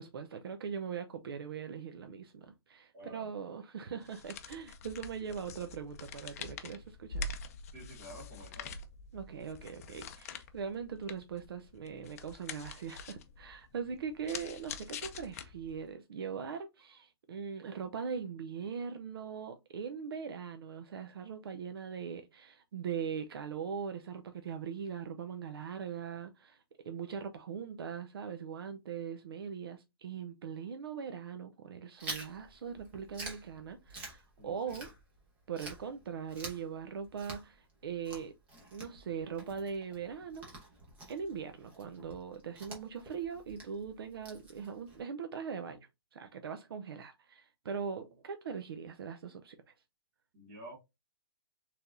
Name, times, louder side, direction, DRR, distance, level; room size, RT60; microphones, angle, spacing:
voice 1, 0.0-7.3 9.1-26.6 26.8-34.9 35.5-38.3 38.7-40.5 41.1-49.6, right 6 dB, 75° right, 0.6 m, -41 dB
voice 2, 2.9-3.3 7.7-8.8 34.4-34.8 50.3-50.7, right 1 dB, 30° right, 2.2 m, -50 dB
sound 1, 4.0-15.9, left 3 dB, 40° left, 0.5 m, -45 dB
Chewing mastication, 32.0-35.2 35.5-45.0, right 2 dB, 10° right, 0.9 m, -48 dB
4.5 x 3.4 x 2.6 m
hypercardioid pair, 175°, 13 cm